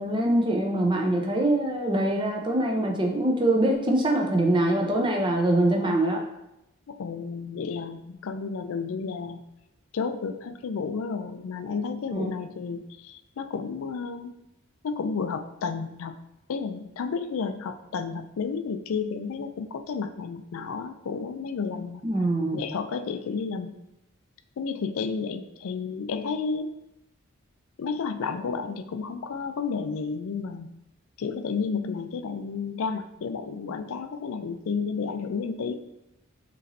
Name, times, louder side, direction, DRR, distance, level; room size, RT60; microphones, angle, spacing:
voice 1, 0.0-6.2 12.1-12.3 22.0-22.6, right 1 dB, 20° right, 1 dB, 0.6 m, -24 dB
voice 2, 6.9-9.4 9.9-14.3 14.8-16.2 16.5-22.0 22.5-23.7 24.6-26.8 27.8-30.7 31.2-35.8, left 5 dB, 70° left, 9 dB, 0.4 m, -31 dB
6.5 x 3.1 x 2.6 m, 0.89 s
head